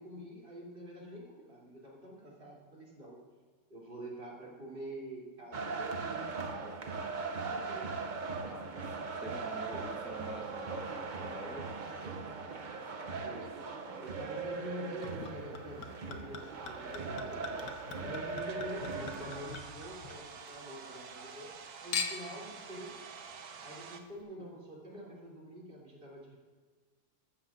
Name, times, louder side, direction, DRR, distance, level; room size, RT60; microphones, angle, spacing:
voice 1, 0.0-3.2 3.7-7.9 13.1-23.0 23.6-26.4, right 1 dB, 35° right, -4 dB, 3.3 m, -46 dB
sound 1, 5.5-19.6, right 4 dB, 55° right, 0.5 m, -39 dB
voice 2, 8.4-11.7 13.9-14.0 18.0-18.2, left 1 dB, ahead, 2 dB, 0.5 m, -47 dB
Chink clink / Liquid, 15.0-20.5 20.9-21.6 21.9-22.4 23.2-23.3, left 5 dB, 75° left, 1.5 m, -42 dB
Domestic sounds home sounds, 18.4-24.0, right 6 dB, 75° right, 1.4 m, -49 dB
14.0 x 13.0 x 2.5 m, 1.4 s
omnidirectional pair, 1.7 m